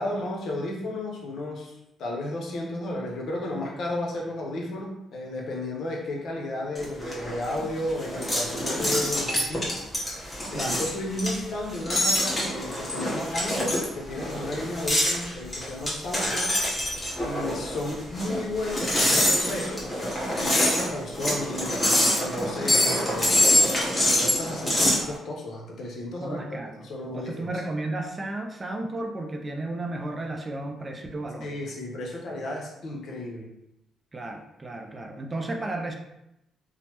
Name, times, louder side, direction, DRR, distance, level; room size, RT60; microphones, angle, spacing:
voice 1, 0.0-9.8 10.5-16.5 17.2-21.8 22.2-23.6 24.2-27.5 31.4-33.5, left 1 dB, 65° left, -1 dB, 0.7 m, -33 dB
sound 1, 6.8-25.0, left 1 dB, 20° left, 1.0 m, -25 dB
voice 2, 26.2-31.7 34.1-35.9, right 2 dB, 25° right, 3 dB, 0.4 m, -33 dB
3.1 x 2.0 x 2.9 m, 0.85 s
cardioid pair, 90°, 0 cm